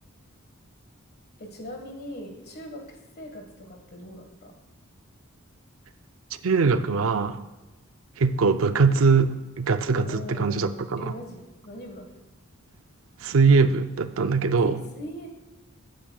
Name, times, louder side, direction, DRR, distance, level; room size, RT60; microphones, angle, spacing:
voice 1, 1.4-4.5 10.0-12.1 14.6-14.7 14.9-15.3, equal, 50° left, 3 dB, 1.6 m, -40 dB
voice 2, 6.4-7.4 8.2-11.1 13.2-14.8, right 4 dB, 70° right, 11 dB, 0.5 m, -22 dB
15.0 x 8.9 x 2.3 m, 1.1 s
head